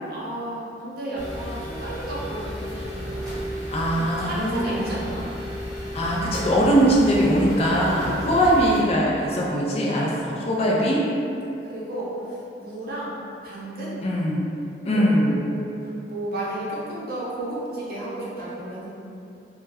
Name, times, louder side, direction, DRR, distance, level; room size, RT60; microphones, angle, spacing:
voice 1, 0.1-3.1 3.9-5.2 7.8-8.8 9.8-10.6 11.7-12.1 12.6-13.2 13.4-14.0 14.9-15.7 16.1-18.9, right 1 dB, 55° right, -7 dB, 0.6 m, -33 dB
sound 1, 1.1-8.8, equal, ahead, 0.8 m, -33 dB
voice 2, 3.7-5.0 5.9-11.0 14.0-14.5 14.8-15.4, equal, 35° left, -4 dB, 0.4 m, -21 dB
2.2 x 2.1 x 3.3 m, 2.7 s
head